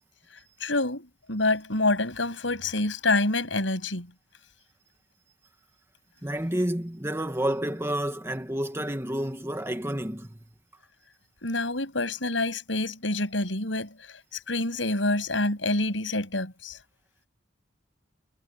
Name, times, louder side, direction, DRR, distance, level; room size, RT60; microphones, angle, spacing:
voice 1, 0.6-4.1 11.4-16.8, left 2 dB, 85° left, 7.9 m, -27 dB
voice 2, 6.2-10.4, right 1 dB, 15° right, 2.1 m, -30 dB
head